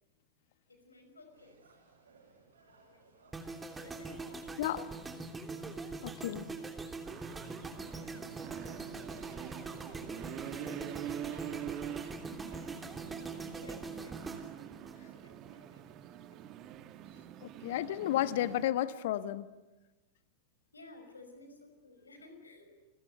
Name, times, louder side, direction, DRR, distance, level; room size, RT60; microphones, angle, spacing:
voice 1, 0.7-1.7 2.6-3.3 3.7-4.8 7.7-10.9 11.3-12.8 13.3-14.4 15.1-16.0 20.7-22.8, left 2 dB, 80° left, 6 dB, 5.6 m, -58 dB
sound 1, 1.3-12.3, right 4 dB, 70° right, 7.8 m, -65 dB
sound 2, 3.3-15.5 15.8-16.1, right 3 dB, 10° right, 3.1 m, -43 dB
voice 2, 6.0-6.5 17.4-19.5, left 13 dB, 55° left, 13 dB, 1.3 m, -32 dB
sound 3, 7.1-18.7, right 11 dB, 35° right, 1.6 m, -45 dB
30.0 x 22.5 x 8.3 m, 1.1 s
figure-of-eight pair, 90°, 0 cm